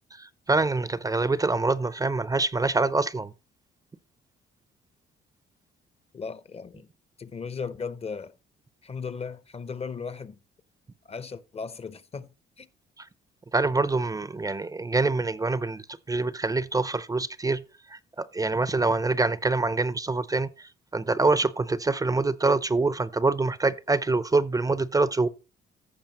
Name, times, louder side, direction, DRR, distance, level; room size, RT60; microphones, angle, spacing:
voice 1, 0.2-3.3 13.5-15.8 16.1-17.6 17.9-25.3, right 3 dB, 20° right, 0.4 m, -25 dB
voice 2, 6.1-6.9 7.2-8.3 8.8-10.4 11.1-12.3 12.6-12.7, left 5 dB, 30° left, 0.6 m, -36 dB
14.5 x 5.0 x 2.9 m
cardioid pair, 90°, 20 cm